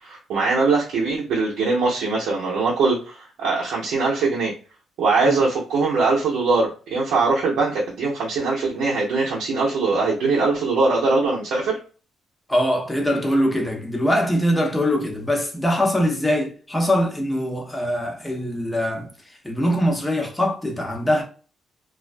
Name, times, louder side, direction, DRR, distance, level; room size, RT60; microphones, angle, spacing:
voice 1, 0.0-4.5 5.0-11.8, right 3 dB, 80° right, 0.6 m, -21 dB
voice 2, 12.5-19.1 19.4-21.2, equal, 10° left, 0.7 m, -22 dB
2.3 x 2.1 x 2.4 m
cardioid pair, 90°, 0 cm